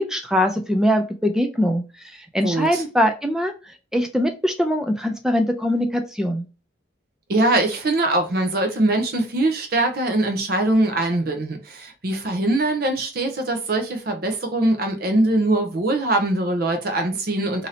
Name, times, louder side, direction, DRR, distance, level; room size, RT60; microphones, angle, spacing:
voice 1, 0.0-1.8 2.3-3.5 3.9-6.4, equal, 5° right, 0.3 m, -22 dB
voice 2, 2.4-2.8 7.3-17.7, right 2 dB, 50° right, 0.7 m, -22 dB
2.8 x 2.6 x 3.2 m
head